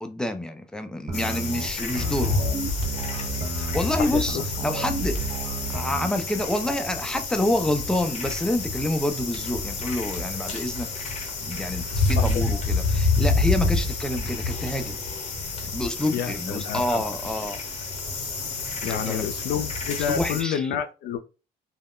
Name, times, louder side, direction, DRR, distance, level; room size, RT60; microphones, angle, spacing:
voice 1, 0.0-2.4 3.6-5.2 5.7-10.9 11.4-15.0 15.7-17.6 18.8-19.2 20.1-20.7, left 1 dB, 5° left, 0.4 m, -28 dB
sound 1, 1.1-20.4, left 3 dB, 40° left, 0.8 m, -28 dB
sound 2, 1.1-6.1, right 4 dB, 40° right, 0.7 m, -32 dB
voice 2, 4.0-4.4 11.9-12.4 16.1-17.0 18.8-21.2, left 8 dB, 70° left, 0.5 m, -29 dB
2.3 x 2.1 x 3.6 m
cardioid pair, 110°, 17 cm